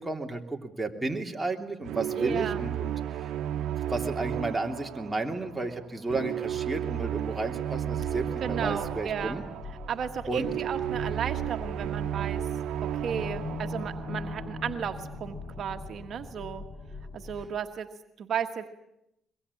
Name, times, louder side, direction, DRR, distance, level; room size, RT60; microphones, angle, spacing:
voice 1, 0.0-3.3 3.9-9.4 10.3-10.5, right 2 dB, 10° right, 2 dB, 3.1 m, -33 dB
sound 1, 1.8-14.9, right 10 dB, 85° right, 1.1 m, -33 dB
voice 2, 2.2-2.6 8.4-9.4 9.9-12.4 13.0-16.6 17.1-17.9 18.2-18.7, right 7 dB, 60° right, 6 dB, 1.4 m, -34 dB
sound 2, 7.7-17.5, left 3 dB, 35° left, 5.0 m, -41 dB
23.0 x 22.0 x 9.8 m, 0.83 s
cardioid pair, 90°, 0 cm